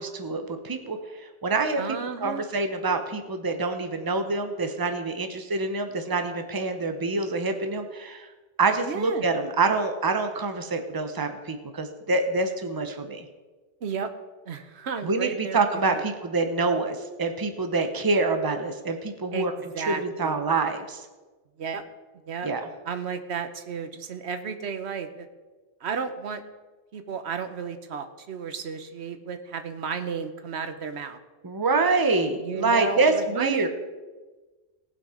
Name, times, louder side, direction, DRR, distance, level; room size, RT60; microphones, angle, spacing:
voice 1, 0.0-1.8 2.2-8.3 8.6-13.2 15.0-19.5 19.8-21.0 22.4-22.7 31.4-33.7, right 3 dB, 20° right, 6 dB, 0.9 m, -26 dB
voice 2, 1.8-2.4 8.9-9.2 13.8-14.1 14.5-15.6 19.3-20.4 21.6-21.8 22.3-22.5 22.9-25.3 25.8-26.4 26.9-31.2 32.4-33.7, right 6 dB, 75° right, 9 dB, 1.1 m, -33 dB
18.5 x 6.2 x 5.0 m, 1.3 s
omnidirectional pair, 1.1 m